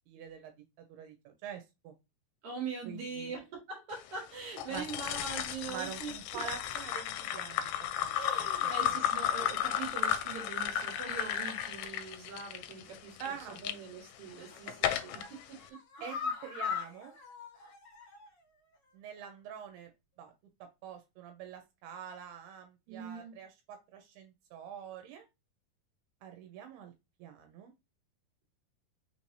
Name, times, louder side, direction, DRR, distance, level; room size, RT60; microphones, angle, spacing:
voice 1, 0.1-0.6 0.9-1.9 2.9-3.3 4.7-4.9 5.7-7.7 8.0-8.6 8.9-9.0 13.2-13.6 14.6-15.0 16.0-17.1 18.9-19.9 20.2-20.3 20.6-25.3 26.2-26.9 27.2-27.7, right 8 dB, 80° right, 2.6 m, -45 dB
voice 2, 2.4-6.4 8.2-16.1 22.9-23.3, right 4 dB, 55° right, 2.4 m, -43 dB
sound 1, 4.6-13.8 14.3-15.3, left 10 dB, 85° left, 2.5 m, -34 dB
sound 2, 14.2-14.6 15.0-18.4 18.7-18.8 19.2-19.3, left 6 dB, 60° left, 2.2 m, -40 dB
5.8 x 3.2 x 2.6 m
omnidirectional pair, 4.6 m